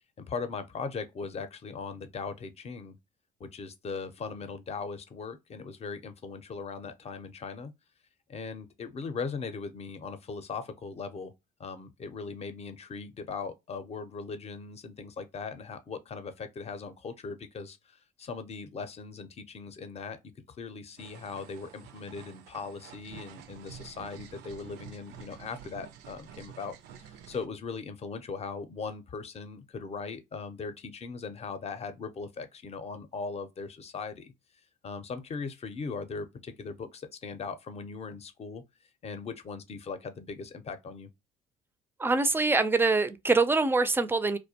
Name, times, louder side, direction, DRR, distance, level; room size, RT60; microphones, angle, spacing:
voice 1, 0.2-3.0 3.4-7.7 8.3-11.3 11.6-20.2 20.5-34.3 34.8-38.6 39.0-41.1, left 5 dB, 35° left, 0.6 m, -39 dB
sound 1, 21.0-27.5, right 8 dB, 75° right, 0.4 m, -49 dB
voice 2, 42.0-44.4, right 3 dB, 15° right, 0.4 m, -24 dB
2.4 x 2.1 x 2.7 m
supercardioid pair, 65°, 17 cm